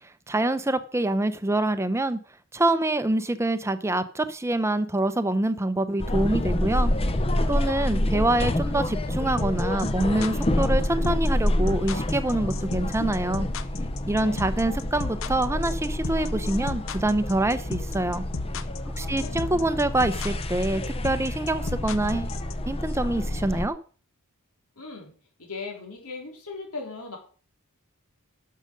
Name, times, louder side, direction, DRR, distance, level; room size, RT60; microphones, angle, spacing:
voice 1, 0.3-2.2 2.5-6.9 7.5-13.5 14.1-18.2 19.0-22.3 22.7-23.8, right 1 dB, 10° right, 12 dB, 0.6 m, -25 dB
sound 1, 6.0-23.7, left 1 dB, 25° left, 0.8 m, -28 dB
sound 2, 9.4-22.5, left 5 dB, 60° left, 0.7 m, -34 dB
voice 2, 19.0-19.5 24.8-25.1 25.4-27.2, left 4 dB, 75° left, 1 dB, 3.8 m, -38 dB
12.0 x 6.6 x 5.2 m, 0.40 s
head